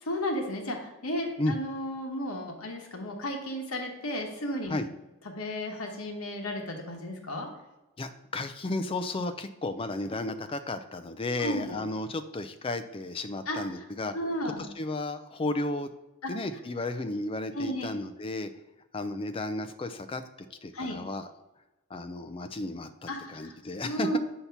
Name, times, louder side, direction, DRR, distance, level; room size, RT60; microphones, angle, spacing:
voice 1, 0.0-4.8 5.2-7.5 11.4-11.8 13.5-13.8 14.1-14.6 16.2-16.3 17.5-17.9 20.7-21.0 23.1-23.5 23.8-24.2, equal, 75° left, 1 dB, 1.1 m, -33 dB
voice 2, 8.0-14.1 14.8-15.9 16.3-18.5 18.9-20.2 20.6-21.3 21.9-24.2, left 2 dB, 25° left, 9 dB, 0.4 m, -33 dB
8.1 x 2.9 x 5.7 m, 1.0 s
head